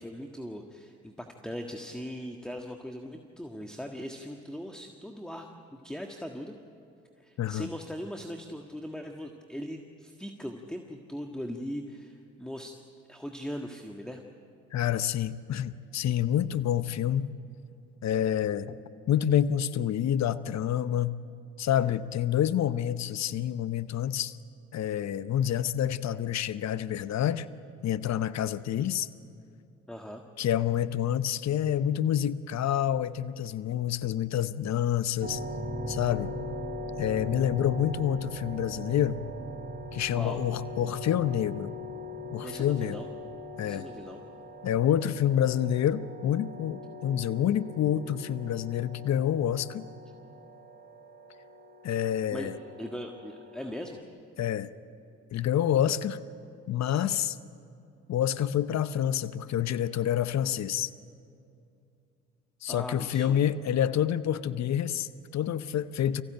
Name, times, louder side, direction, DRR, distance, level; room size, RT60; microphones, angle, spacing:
voice 1, 0.0-6.6 7.2-12.8 13.1-14.2 29.9-30.2 40.1-40.4 42.4-43.1 43.6-44.2 52.3-52.5 52.8-54.0 62.7-63.4, equal, ahead, 3 dB, 1.7 m, -39 dB
voice 2, 7.4-7.7 14.7-17.3 18.0-18.8 19.1-21.2 21.6-24.4 24.7-27.5 27.8-29.1 30.4-35.4 35.9-36.3 37.0-39.2 39.9-41.7 42.3-43.0 43.6-43.9 44.6-49.9 51.8-52.6 54.4-54.7 55.3-56.2 56.7-57.4 58.1-60.9 62.6-66.2, left 10 dB, 50° left, 14 dB, 0.8 m, -28 dB
sound 1, 35.2-54.0, equal, 30° right, 3.0 m, -40 dB
24.0 x 15.5 x 9.0 m, 2.6 s
hypercardioid pair, 55°, 34 cm